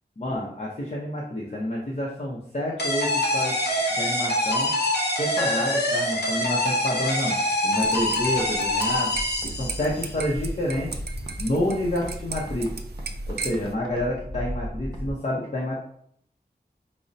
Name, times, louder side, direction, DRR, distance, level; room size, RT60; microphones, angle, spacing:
voice 1, 0.2-3.6 3.9-4.7 5.2-9.1 9.4-11.0 11.4-12.8 13.3-15.8, left 1 dB, 45° left, -5 dB, 0.7 m, -29 dB
sound 1, 2.8-10.1, left 1 dB, 80° left, 0.8 m, -25 dB
sound 2, 7.8-13.7, right 4 dB, 80° right, 0.4 m, -36 dB
sound 3, 9.0-15.1, equal, 25° right, 0.7 m, -36 dB
5.2 x 2.1 x 2.6 m, 0.67 s
wide cardioid pair, 70°, 17 cm